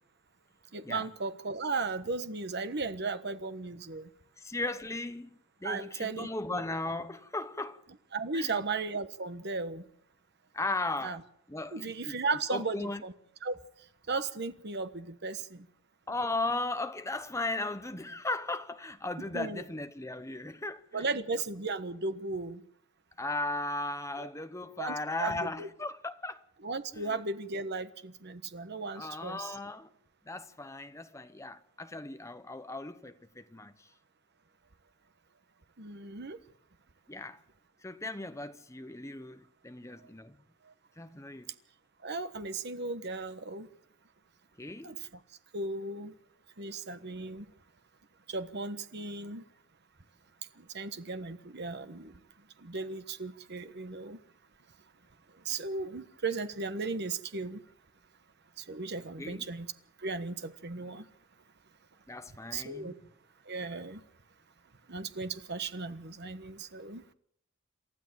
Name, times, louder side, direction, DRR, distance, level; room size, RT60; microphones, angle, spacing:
voice 1, 0.7-4.1 5.6-6.6 8.1-9.8 11.0-11.2 11.7-13.1 13.4-13.5 14.1-15.6 19.3-19.6 20.9-22.6 24.2-24.3 24.8-25.7 26.6-29.5 35.8-36.4 42.0-43.7 44.8-45.0 45.5-46.1 46.6-47.4 48.3-49.4 50.7-52.1 52.6-54.2 55.4-57.6 58.7-59.7 60.0-61.0 62.5-62.9 63.5-64.0 64.9-67.0, right 3 dB, 55° right, 1.3 m, -36 dB
voice 2, 4.4-7.8 8.3-8.6 10.5-11.2 11.5-12.2 12.5-13.0 16.1-21.1 23.2-26.4 26.9-27.2 28.9-29.9 30.2-33.9 37.1-37.4 37.8-40.4 41.0-41.5 44.6-45.0 59.2-59.4 62.1-62.9, left 2 dB, 15° left, 1.1 m, -37 dB
28.5 x 13.0 x 7.7 m
head